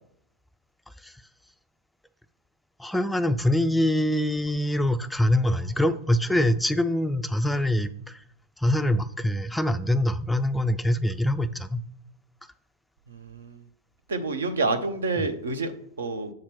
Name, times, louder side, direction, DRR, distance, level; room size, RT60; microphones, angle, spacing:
voice 1, 2.8-8.2 8.6-11.8, left 1 dB, 5° left, 11 dB, 0.3 m, -24 dB
voice 2, 13.1-13.6 14.1-15.7 16.0-16.3, right 3 dB, 70° right, 10 dB, 0.7 m, -28 dB
7.4 x 2.9 x 6.0 m, 0.71 s
figure-of-eight pair, 90°, 0 cm